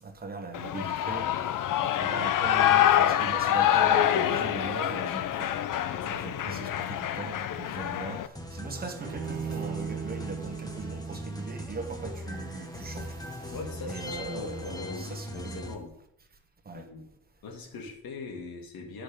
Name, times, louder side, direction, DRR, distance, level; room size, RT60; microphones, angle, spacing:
voice 1, 0.0-1.3 1.7-5.5 6.1-13.5 13.9-15.7 16.6-16.9, right 4 dB, 25° right, 1.3 m, -40 dB
Shout / Cheering, 0.5-8.3, left 11 dB, 65° left, 0.7 m, -26 dB
voice 2, 5.9-6.7 13.5-15.9 16.7-17.1 17.4-19.0, left 4 dB, 80° left, 2.2 m, -41 dB
sound 1, 8.4-15.7, left 1 dB, 10° left, 1.2 m, -40 dB
Bowed string instrument, 9.0-12.3, right 6 dB, 90° right, 1.4 m, -38 dB
10.5 x 6.2 x 5.1 m
cardioid pair, 145°, 35 cm